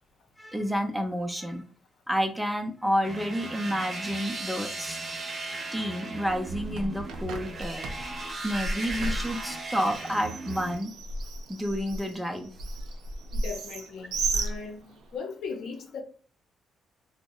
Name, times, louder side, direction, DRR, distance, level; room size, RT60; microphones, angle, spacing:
voice 1, 0.4-1.6 2.1-5.0 5.7-7.9 8.4-10.9 11.5-12.5, equal, 5° right, 0.6 m, -30 dB
sound 1, 3.0-10.8, right 3 dB, 40° right, 0.8 m, -37 dB
Bird, 6.3-15.2, right 2 dB, 85° right, 0.3 m, -35 dB
voice 2, 13.3-14.8 15.1-16.0, left 5 dB, 75° left, 0.6 m, -38 dB
2.7 x 2.1 x 2.3 m
supercardioid pair, 65°, 0 cm